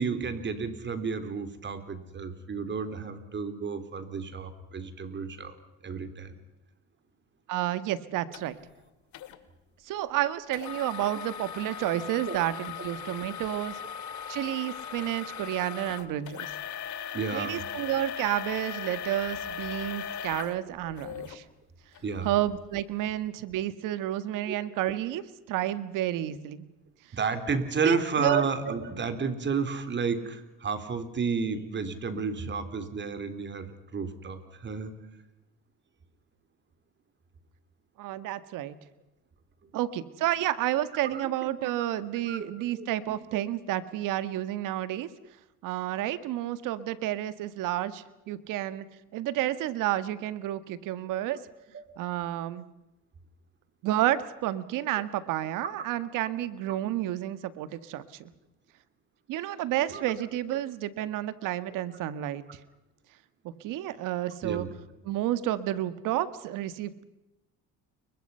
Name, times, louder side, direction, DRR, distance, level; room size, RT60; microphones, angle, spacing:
voice 1, 0.0-5.5 5.8-6.4 12.3-12.4 17.1-17.7 20.8-20.9 22.0-22.3 24.5-24.6 27.1-35.0 41.0-41.3 41.7-41.9 42.3-42.5 42.8-43.4 56.4-56.8 59.9-60.0 64.4-64.7, right 5 dB, 35° right, 9 dB, 3.7 m, -32 dB
voice 2, 7.5-8.6 9.8-13.8 14.3-16.5 17.3-21.4 22.2-26.7 27.9-28.5 38.0-38.8 39.7-45.1 45.6-48.9 49.1-51.4 52.0-52.6 53.8-58.0 59.3-62.6 63.4-64.7 65.0-67.0, right 13 dB, 80° right, 14 dB, 1.8 m, -30 dB
sound 1, 8.3-8.4 9.1-9.4 10.5-21.4 21.9-22.0 22.6-22.8, left 8 dB, 65° left, 2.5 m, -38 dB
30.0 x 23.0 x 5.7 m, 0.97 s
cardioid pair, 110°, 32 cm